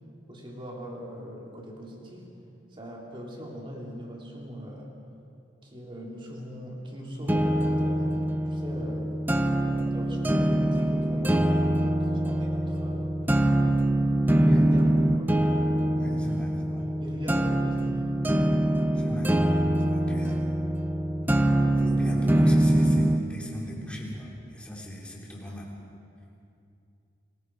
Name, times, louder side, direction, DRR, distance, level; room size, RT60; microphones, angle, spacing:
voice 1, 0.3-2.3 2.7-4.9 5.6-8.2 8.4-9.1 9.5-13.1 14.5-15.5 17.0-18.1, equal, 25° right, -2 dB, 3.6 m, -40 dB
sound 1, 7.3-23.3, right 1 dB, 10° right, 0.8 m, -24 dB
voice 2, 16.0-16.8 18.9-19.3 19.9-20.4 21.7-25.7, equal, 5° left, -3 dB, 3.4 m, -37 dB
30.0 x 21.5 x 4.9 m, 2.6 s
head